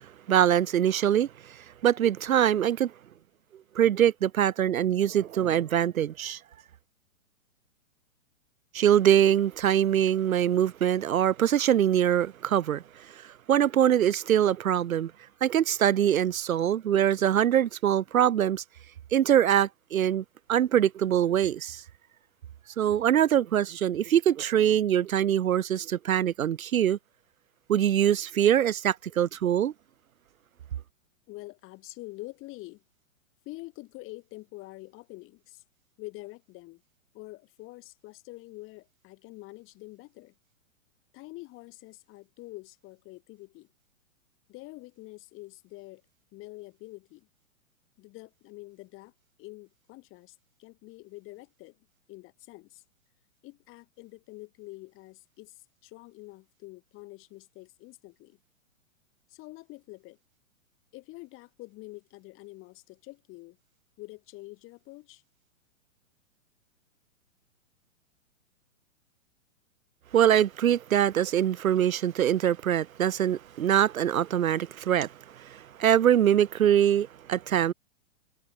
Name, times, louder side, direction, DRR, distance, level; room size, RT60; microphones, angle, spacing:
voice 1, 0.3-1.3 1.8-2.9 3.8-6.4 8.7-12.8 13.5-15.1 15.4-18.6 19.1-20.2 20.5-21.8 22.8-27.0 27.7-29.7 70.1-75.1 75.4-77.7, right 10 dB, 80° right, 0.8 m, -23 dB
voice 2, 31.3-32.8 33.4-35.6 36.0-36.8 37.1-40.3 41.1-43.7 44.5-46.0 46.3-47.3 48.0-49.1 49.4-51.8 52.1-52.8 53.4-58.4 59.3-60.2 60.9-63.6 64.0-65.2, left 20 dB, 30° left, 3.4 m, -46 dB
hypercardioid pair, 125°, 41 cm